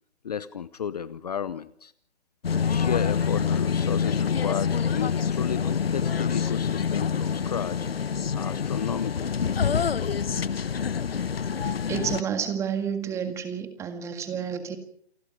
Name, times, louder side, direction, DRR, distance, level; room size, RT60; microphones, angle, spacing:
voice 1, 0.2-1.9 2.6-7.9 8.3-9.3, left 8 dB, 40° left, 17 dB, 0.9 m, -33 dB
sound 1, 2.4-12.2, left 7 dB, 65° left, 1.0 m, -26 dB
voice 2, 11.9-14.8, right 7 dB, 10° right, 9 dB, 1.8 m, -30 dB
28.5 x 19.5 x 5.1 m, 0.63 s
figure-of-eight pair, 150°, 33 cm